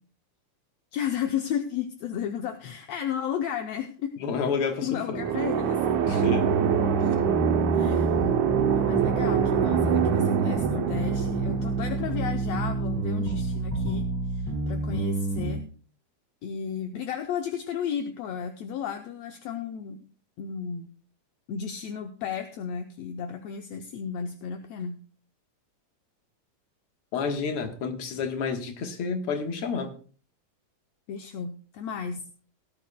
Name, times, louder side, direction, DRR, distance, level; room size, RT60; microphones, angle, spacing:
voice 1, 0.9-4.2 4.8-5.8 7.7-8.1 8.7-15.6 16.4-20.0 20.4-20.9 21.5-25.0 31.1-32.2, left 8 dB, 70° left, 1.7 m, -33 dB
voice 2, 4.2-5.3 6.1-6.5 7.0-7.1 27.1-29.9, left 5 dB, 55° left, 2.0 m, -30 dB
sound 1, 5.1-12.8, right 9 dB, 75° right, 2.2 m, -25 dB
sound 2, 6.1-15.5, right 2 dB, 5° left, 3.8 m, -28 dB
18.0 x 11.0 x 2.2 m
omnidirectional pair, 3.5 m